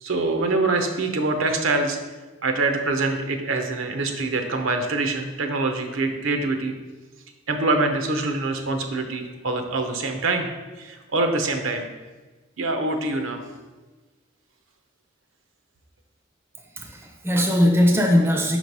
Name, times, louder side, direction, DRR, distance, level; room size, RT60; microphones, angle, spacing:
voice 1, 0.0-2.0 2.4-6.7 7.5-10.5 10.8-11.9 12.6-13.4, right 3 dB, 75° right, 5 dB, 0.7 m, -24 dB
voice 2, 16.6-18.6, left 1 dB, 10° right, 1 dB, 0.5 m, -20 dB
5.9 x 3.1 x 5.3 m, 1.2 s
head